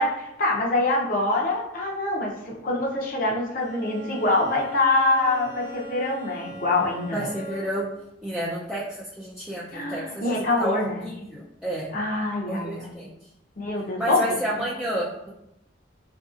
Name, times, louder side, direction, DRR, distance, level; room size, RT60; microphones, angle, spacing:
voice 1, 0.0-7.3 8.4-8.5 9.7-11.0 11.9-12.9 13.6-14.2, left 2 dB, 45° left, -2 dB, 0.6 m, -25 dB
Bowed string instrument, 3.6-8.0, right 1 dB, 75° left, 0.9 m, -41 dB
voice 2, 7.1-7.9 8.2-11.9 12.5-13.1 14.0-15.3, right 1 dB, 5° right, -7 dB, 0.4 m, -30 dB
3.9 x 2.7 x 2.4 m, 0.85 s
head